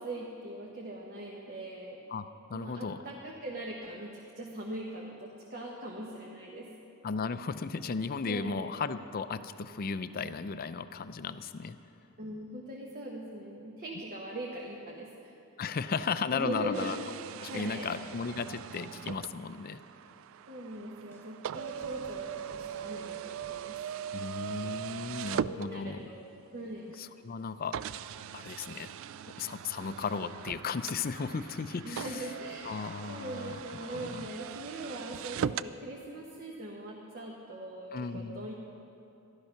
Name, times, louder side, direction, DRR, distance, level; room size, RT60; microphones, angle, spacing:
voice 1, 0.0-2.0 2.5-6.7 8.3-8.7 12.2-15.3 16.3-16.9 17.5-17.9 20.5-23.8 25.4-26.2 26.5-26.9 31.9-38.5, right 1 dB, 40° right, -3 dB, 1.2 m, -41 dB
voice 2, 2.1-3.0 7.0-11.8 15.6-17.0 17.4-19.8 24.1-26.1 27.0-27.8 28.3-28.9 29.4-32.3 32.6-33.6 33.9-34.3 37.9-38.5, left 5 dB, 40° left, 12 dB, 0.4 m, -35 dB
sound 1, 16.7-26.2 26.9-27.0 27.7-35.8, right 8 dB, 60° right, 0.3 m, -40 dB
sound 2, 20.7-24.2, equal, 10° left, 1.0 m, -57 dB
14.0 x 12.0 x 5.8 m, 2.8 s
head